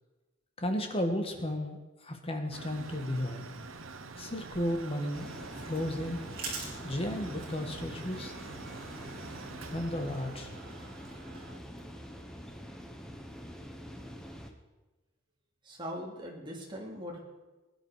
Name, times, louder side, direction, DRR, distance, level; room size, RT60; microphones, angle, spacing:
voice 1, 0.6-3.5 4.2-6.2 6.8-8.3 9.7-10.5, left 1 dB, 30° left, 5 dB, 1.7 m, -34 dB
Mechanical fan, 2.5-11.6, right 3 dB, 80° right, 1.0 m, -46 dB
sound 1, 5.1-14.5, equal, 5° left, 1.2 m, -45 dB
Eating crunchy crisps, 5.2-11.8, right 4 dB, 50° right, 4.5 m, -47 dB
voice 2, 15.6-17.2, equal, 25° right, -1 dB, 2.8 m, -40 dB
20.5 x 10.0 x 5.0 m, 1.1 s
head